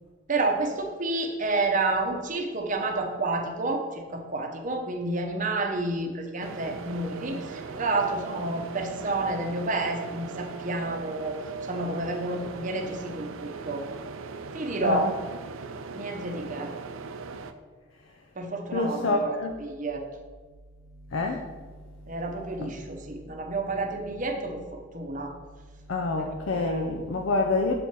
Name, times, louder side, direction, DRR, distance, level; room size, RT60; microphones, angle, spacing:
voice 1, 0.3-11.4 11.7-13.8 14.5-15.1 15.9-16.7 18.4-20.0 22.1-25.3 26.2-26.9, right 2 dB, 40° right, 3 dB, 0.8 m, -30 dB
sound 1, 6.4-17.5, right 4 dB, 75° right, 0.4 m, -39 dB
voice 2, 14.8-15.2 18.7-19.5 21.1-21.5 22.6-22.7 25.9-27.7, left 3 dB, 65° left, 3 dB, 0.5 m, -27 dB
6.9 x 4.4 x 4.7 m, 1.4 s
head